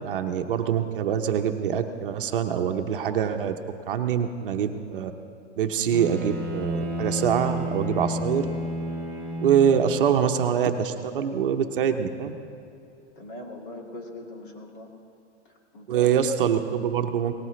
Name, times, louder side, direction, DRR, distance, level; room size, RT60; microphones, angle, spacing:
voice 1, 0.0-3.5 3.9-5.1 5.6-8.5 9.4-12.3 15.9-17.5, right 8 dB, 50° right, 6 dB, 0.8 m, -24 dB
Bowed string instrument, 5.9-10.4, equal, 15° left, 0.3 m, -31 dB
voice 2, 13.2-14.9 15.7-16.1, left 2 dB, 45° left, 1 dB, 2.1 m, -40 dB
18.5 x 18.0 x 3.1 m, 2.7 s
hypercardioid pair, 170°, 36 cm